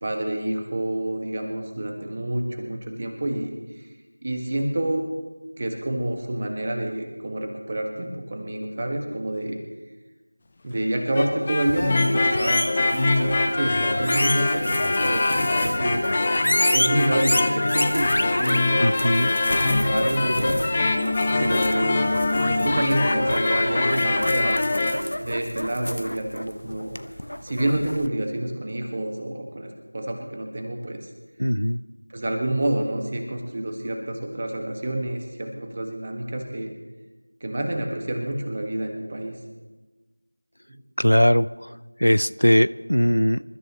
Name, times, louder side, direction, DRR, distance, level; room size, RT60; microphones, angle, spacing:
voice 1, 0.0-3.5 3.8-3.9 4.2-5.0 5.6-9.6 10.6-16.0 16.7-19.1 19.4-20.6 21.4-22.0 22.5-24.6 25.2-27.0 27.4-31.0 32.1-36.7 37.4-39.3 40.7-40.8, right 1 dB, 25° right, 3 dB, 1.6 m, -28 dB
sound 1, 11.0-24.9, left 2 dB, 15° left, 0.7 m, -23 dB
sound 2, 11.6-28.1, left 1 dB, 60° left, 0.9 m, -29 dB
voice 2, 18.8-19.3 31.4-31.8 41.0-43.4, equal, 80° left, 17 dB, 0.5 m, -20 dB
27.5 x 13.5 x 3.0 m, 1.2 s
figure-of-eight pair, 175°, 0 cm